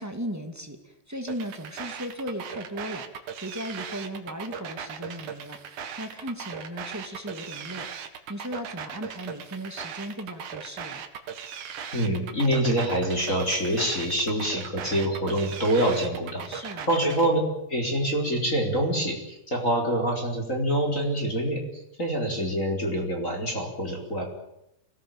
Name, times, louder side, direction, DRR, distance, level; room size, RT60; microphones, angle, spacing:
voice 1, 0.0-3.0 3.4-11.0 16.4-16.9, equal, 10° right, 6 dB, 1.0 m, -37 dB
sound 1, 1.3-17.3, right 7 dB, 55° right, 3.0 m, -38 dB
voice 2, 11.9-17.4 17.7-21.6 22.0-24.2, right 1 dB, 20° left, 1 dB, 4.4 m, -26 dB
24.5 x 18.5 x 9.0 m, 0.81 s
omnidirectional pair, 4.8 m